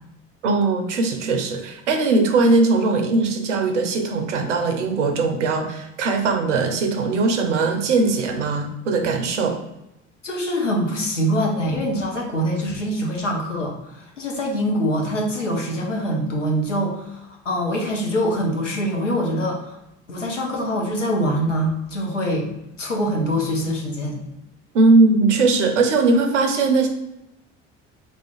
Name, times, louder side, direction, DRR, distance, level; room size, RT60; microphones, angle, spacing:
voice 1, 0.4-9.6 24.7-26.9, right 3 dB, 80° right, 5 dB, 0.5 m, -20 dB
voice 2, 10.2-19.8 20.1-22.5 22.8-24.2, equal, 90° left, 0 dB, 0.5 m, -24 dB
3.6 x 2.4 x 2.4 m, 0.88 s
figure-of-eight pair, 55°, 36 cm